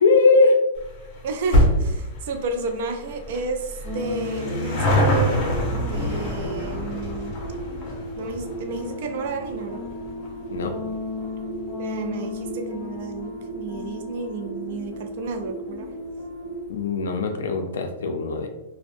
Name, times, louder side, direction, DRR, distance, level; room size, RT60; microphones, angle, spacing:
voice 1, 0.0-0.6 10.5-10.7 16.7-18.5, left 3 dB, 85° left, 5 dB, 0.3 m, -20 dB
sound 1, 0.8-13.5 13.8-13.9 14.8-14.9 15.1-15.2 15.4-15.5, equal, 35° left, 0.7 m, -27 dB
voice 2, 1.2-7.4 8.2-9.9 11.8-15.9, right 4 dB, 60° right, 5 dB, 0.4 m, -31 dB
sound 2, 3.8-16.6, left 1 dB, 10° right, 0.8 m, -34 dB
2.5 x 2.1 x 2.5 m, 0.99 s
hypercardioid pair, 135°, 0 cm